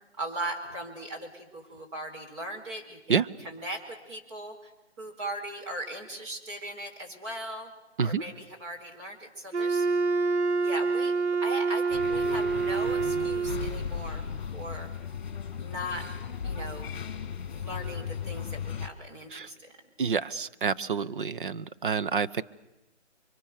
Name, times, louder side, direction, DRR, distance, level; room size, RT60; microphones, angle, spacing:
voice 1, 0.2-4.6 5.0-7.7 8.0-9.9 10.6-14.9 15.6-16.1 16.4-16.9 17.4-19.7, right 1 dB, 25° right, 1 dB, 4.3 m, -39 dB
Wind instrument woodwind instrument, 9.5-13.8, right 4 dB, 70° right, 1.6 m, -27 dB
sound 1, 11.9-18.9, left 7 dB, 40° left, 2.4 m, -36 dB
voice 2, 20.0-22.4, right 6 dB, 45° right, 13 dB, 0.9 m, -28 dB
29.5 x 24.5 x 6.7 m, 0.98 s
hypercardioid pair, 165°, 35 cm